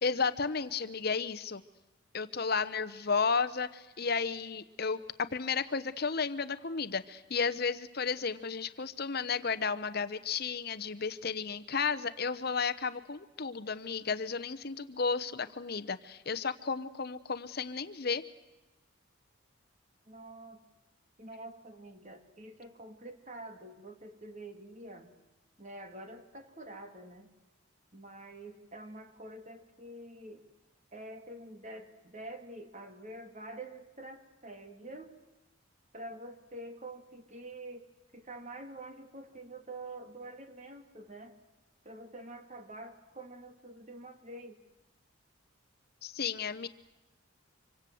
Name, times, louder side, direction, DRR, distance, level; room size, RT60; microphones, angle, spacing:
voice 1, 0.0-1.6 2.1-18.2 46.0-46.7, left 5 dB, 45° left, 11 dB, 0.9 m, -33 dB
voice 2, 20.1-20.6 21.2-25.1 25.6-27.3 27.9-30.4 30.9-35.1 35.9-41.3 41.8-44.6, right 1 dB, 35° right, 7 dB, 2.8 m, -47 dB
26.0 x 24.5 x 7.8 m, 1.0 s
head